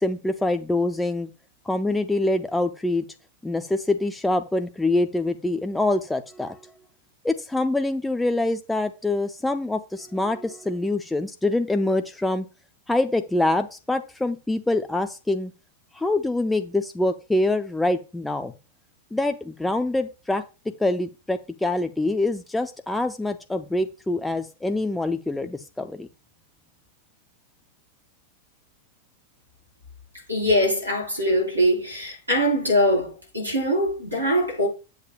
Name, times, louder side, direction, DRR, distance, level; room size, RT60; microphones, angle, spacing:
voice 1, 0.0-1.3 1.7-3.0 3.4-6.6 7.2-12.4 12.9-15.5 15.9-18.5 19.1-20.4 20.8-26.1, left 2 dB, 5° left, 0.5 m, -25 dB
voice 2, 30.3-34.7, equal, 80° right, 4.1 m, -22 dB
8.2 x 8.0 x 2.3 m
figure-of-eight pair, 90°, 0 cm